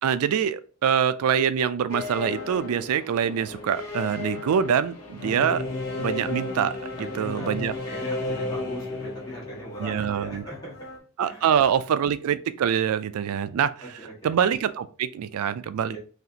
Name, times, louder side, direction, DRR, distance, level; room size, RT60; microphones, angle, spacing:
voice 1, 0.0-5.6 6.0-6.8 7.1-7.7 9.8-10.4 11.2-13.7 14.2-16.0, right 8 dB, 75° right, 14 dB, 0.3 m, -24 dB
sound 1, 1.9-11.0, left 2 dB, 85° left, 1.0 m, -34 dB
voice 2, 6.9-7.5 7.8-10.7 11.2-11.8 13.8-14.3 15.9-16.0, right 1 dB, 15° left, -6 dB, 1.6 m, -40 dB
4.1 x 2.8 x 2.8 m, 0.39 s
head